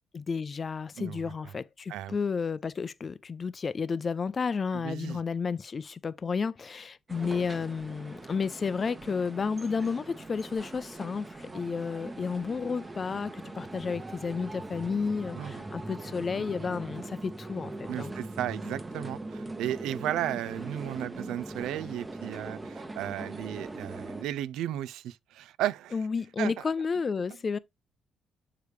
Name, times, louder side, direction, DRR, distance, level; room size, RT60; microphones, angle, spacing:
voice 1, 0.1-18.1 25.9-27.6, left 5 dB, 40° left, 0.5 m, -32 dB
voice 2, 1.0-1.3 1.9-2.2 4.7-5.2 15.4-15.6 17.9-26.0 26.4-26.6, right 12 dB, 90° right, 0.3 m, -34 dB
sound 1, 7.1-24.2, right 2 dB, 20° right, 0.9 m, -41 dB
6.7 x 4.9 x 3.1 m
cardioid pair, 90°, 0 cm